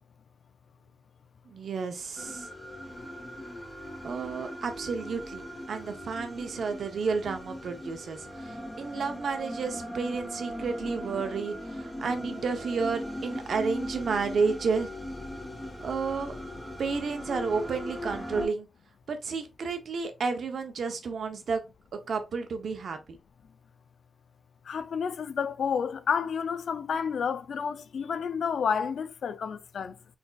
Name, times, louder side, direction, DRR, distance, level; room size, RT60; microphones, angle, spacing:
voice 1, 1.5-2.5 4.0-14.9 15.8-16.3 16.8-18.7 19.1-21.6 22.1-23.0, right 5 dB, 65° right, 0.8 m, -31 dB
sound 1, 2.2-18.5, equal, 15° left, 1.1 m, -39 dB
voice 2, 24.7-29.9, left 6 dB, 75° left, 0.4 m, -30 dB
4.1 x 3.4 x 2.3 m
wide cardioid pair, 140°, 0 cm